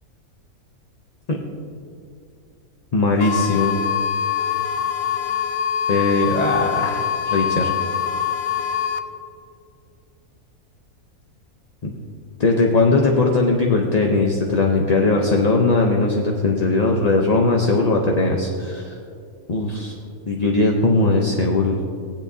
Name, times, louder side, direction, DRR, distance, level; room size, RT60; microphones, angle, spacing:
voice 1, 2.9-3.8 5.9-7.7 11.8-11.9 12.4-19.0 19.5-19.9 20.3-21.8, left 3 dB, 40° left, 0 dB, 0.6 m, -19 dB
sound 1, 3.2-9.0, left 8 dB, 70° left, 1.0 m, -24 dB
16.5 x 10.5 x 2.7 m, 2.4 s
omnidirectional pair, 1.5 m